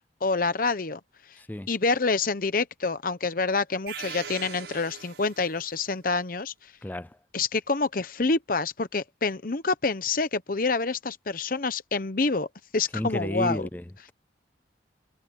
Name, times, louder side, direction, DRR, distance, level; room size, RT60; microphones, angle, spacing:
voice 1, 0.2-1.0 1.7-6.5 7.3-12.5 12.7-13.7, left 3 dB, 50° left, 0.8 m, -27 dB
voice 2, 1.4-1.7 6.8-7.2 12.9-14.1, left 1 dB, 10° left, 0.4 m, -32 dB
sound 1, 3.9-5.8, right 7 dB, 70° right, 6.4 m, -40 dB
head